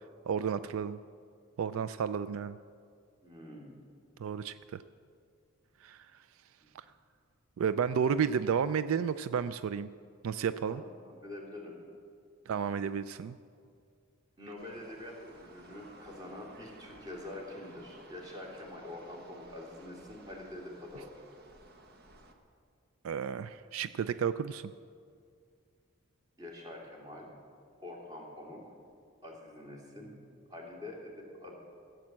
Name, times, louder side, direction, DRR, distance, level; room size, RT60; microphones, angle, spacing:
voice 1, 0.3-1.0 1.6-2.6 4.2-4.8 5.8-6.0 7.6-9.9 10.2-10.8 12.5-13.3 23.0-24.6, right 7 dB, 80° right, 14 dB, 0.3 m, -32 dB
voice 2, 3.2-3.7 10.7-11.8 14.4-21.1 26.4-27.3 27.8-28.7 29.2-30.1 30.5-31.6, left 1 dB, 20° right, -2 dB, 2.8 m, -45 dB
sound 1, 14.6-22.3, right 1 dB, 50° right, 1.2 m, -55 dB
15.0 x 7.9 x 7.4 m, 2.2 s
head